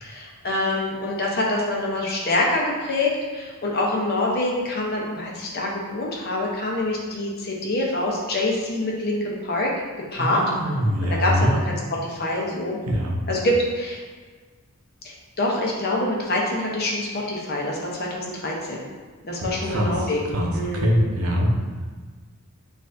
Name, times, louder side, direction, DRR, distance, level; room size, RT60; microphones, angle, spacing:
voice 1, 0.0-9.7 10.1-10.4 11.0-12.8 13.3-14.0 15.0-18.8 19.2-21.0, left 1 dB, 45° left, -2 dB, 0.7 m, -25 dB
voice 2, 10.2-11.5 12.9-13.2 19.4-19.9 20.3-21.5, equal, 85° right, -1 dB, 0.7 m, -23 dB
6.3 x 2.5 x 2.6 m, 1.5 s
head